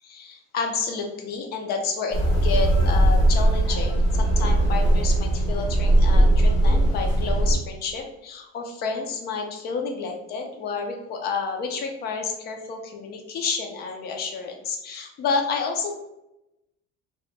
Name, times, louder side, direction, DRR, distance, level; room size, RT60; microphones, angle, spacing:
voice 1, 0.0-16.0, left 5 dB, 35° left, 3 dB, 0.4 m, -30 dB
sound 1, 2.1-7.5, right 1 dB, 70° left, 1.0 m, -19 dB
2.9 x 2.1 x 3.1 m, 0.91 s
cardioid pair, 175°, 29 cm